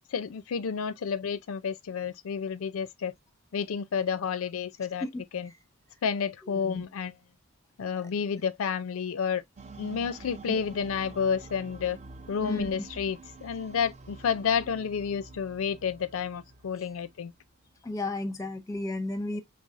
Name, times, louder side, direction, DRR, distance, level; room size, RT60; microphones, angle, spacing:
voice 1, 0.1-3.1 3.5-5.0 5.3-5.5 6.0-7.1 7.8-9.4 9.8-12.0 12.3-17.3, left 6 dB, 65° left, 0.4 m, -30 dB
voice 2, 5.0-5.5 6.4-6.8 7.9-8.1 10.5-10.7 12.4-12.7 17.8-19.4, left 2 dB, 15° left, 0.7 m, -34 dB
sound 1, 9.6-17.7, right 3 dB, 30° right, 0.5 m, -48 dB
5.4 x 3.3 x 2.4 m
head